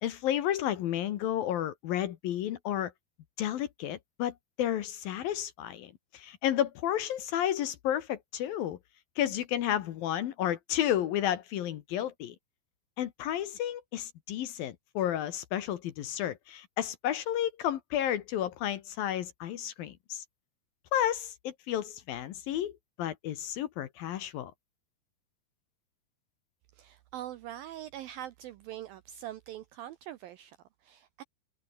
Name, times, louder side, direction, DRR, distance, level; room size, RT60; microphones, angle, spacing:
voice 1, 0.0-2.9 3.4-8.8 9.2-12.4 13.0-20.2 20.9-24.5, left 11 dB, 65° left, 2.7 m, -32 dB
voice 2, 26.7-31.2, right 12 dB, 80° right, 2.1 m, -43 dB
omnidirectional pair, 5.1 m